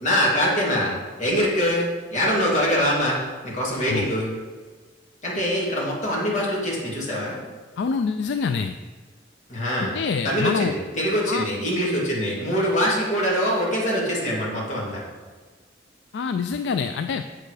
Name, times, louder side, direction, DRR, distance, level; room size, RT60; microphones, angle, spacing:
voice 1, 0.0-3.2 3.4-4.3 5.2-7.4 9.5-9.9 10.2-15.0, equal, 40° left, -5 dB, 2.5 m, -23 dB
voice 2, 7.8-8.7 9.9-10.7 11.3-11.5 16.1-17.2, left 5 dB, 65° left, 8 dB, 0.3 m, -25 dB
7.7 x 6.8 x 4.8 m, 1.4 s
head